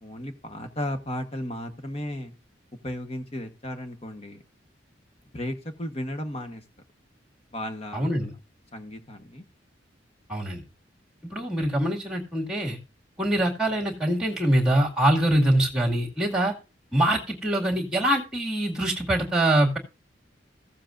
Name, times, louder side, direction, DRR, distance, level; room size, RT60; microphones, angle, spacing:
voice 1, 0.0-2.3 2.8-4.4 5.3-6.6 7.5-8.3 8.7-9.4, left 1 dB, 35° left, 7 dB, 1.1 m, -34 dB
voice 2, 7.9-8.3 10.3-10.6 11.2-12.8 13.2-16.5 16.9-19.8, right 1 dB, 5° right, -1 dB, 2.1 m, -24 dB
15.5 x 7.5 x 2.5 m, 0.31 s
head